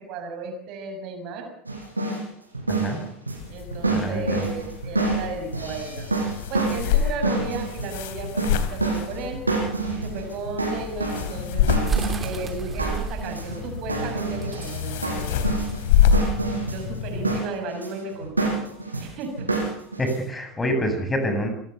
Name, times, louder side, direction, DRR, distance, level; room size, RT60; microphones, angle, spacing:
voice 1, 0.1-1.5 3.5-6.1 6.5-9.4 9.9-11.7 12.2-15.5 16.6-18.7 19.0-19.5, right 3 dB, 50° right, 6 dB, 6.5 m, -34 dB
sound 1, 1.7-2.2 2.5-20.2, right 3 dB, 90° right, 6.2 m, -28 dB
voice 2, 2.7-3.0 3.9-4.4 20.0-21.5, equal, 15° left, 6 dB, 7.2 m, -26 dB
sound 2, 3.4-17.4, left 8 dB, 60° left, 3.1 m, -27 dB
sound 3, 10.8-16.4, right 5 dB, 25° right, 2.9 m, -32 dB
26.5 x 17.0 x 7.0 m, 0.66 s
figure-of-eight pair, 75°, 0 cm